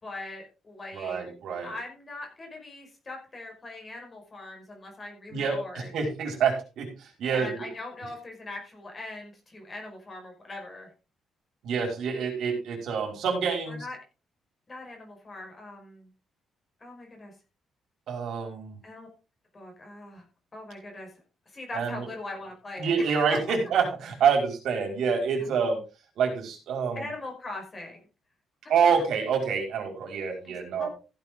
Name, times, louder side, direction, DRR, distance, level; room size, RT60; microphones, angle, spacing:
voice 1, 0.0-1.2 1.6-5.9 7.2-10.9 13.7-14.0 14.7-16.1 16.8-17.3 18.8-19.1 19.5-20.3 20.5-21.1 21.5-23.4 25.4-25.8 27.0-28.0 30.4-30.9, left 2 dB, 25° left, 2 dB, 5.2 m, -41 dB
voice 2, 0.9-1.7 5.3-7.5 11.6-13.9 18.1-18.8 21.7-22.0 22.8-25.8 26.2-27.0 28.7-30.9, right 6 dB, 60° right, 2 dB, 5.2 m, -27 dB
15.5 x 9.2 x 3.8 m, 0.31 s
cardioid pair, 175°, 0 cm